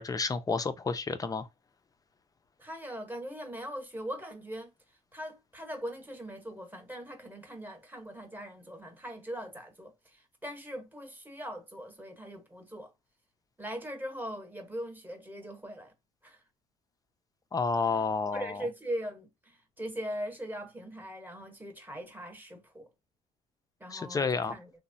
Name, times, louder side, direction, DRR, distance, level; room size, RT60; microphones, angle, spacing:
voice 1, 0.0-1.5 17.5-18.6 23.9-24.5, left 4 dB, 20° left, 0.4 m, -30 dB
voice 2, 2.6-4.7 5.1-12.9 13.6-15.9 16.2-16.4 17.8-22.9 23.8-24.7, equal, 10° right, 0.9 m, -41 dB
3.1 x 2.1 x 2.5 m
cardioid pair, 110°, 17 cm